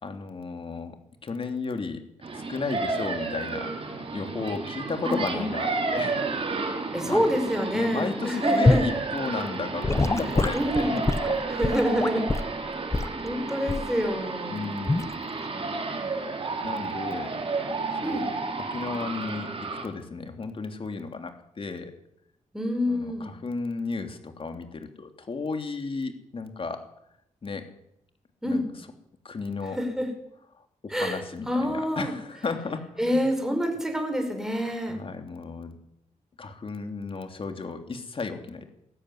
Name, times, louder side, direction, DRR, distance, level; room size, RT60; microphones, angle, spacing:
voice 1, 0.0-1.0 1.2-2.0 2.3-6.2 7.0-7.2 7.7-11.0 14.5-15.0 16.6-17.4 18.0-18.3 18.7-19.5 19.8-21.9 22.9-26.8 27.4-27.7 28.5-28.6 29.2-29.8 30.8-33.3 34.9-35.8 36.4-38.7, left 4 dB, 45° left, 6 dB, 3.0 m, -34 dB
sound 1, 2.2-19.8, right 3 dB, 45° right, 4.0 m, -31 dB
voice 2, 5.0-5.5 6.9-8.9 10.5-11.0 11.5-12.2 13.2-14.6 18.0-18.3 22.5-23.3 28.4-28.7 29.7-30.1 30.9-32.1 33.0-35.0, equal, 5° right, 4 dB, 5.6 m, -27 dB
Gurgling / Sink (filling or washing) / Liquid, 8.7-8.9 9.8-12.5 12.9-13.2 13.7-14.0 14.9-15.1, left 2 dB, 20° left, 1.1 m, -24 dB
20.0 x 14.0 x 9.9 m, 0.78 s
wide cardioid pair, 115°, 13 cm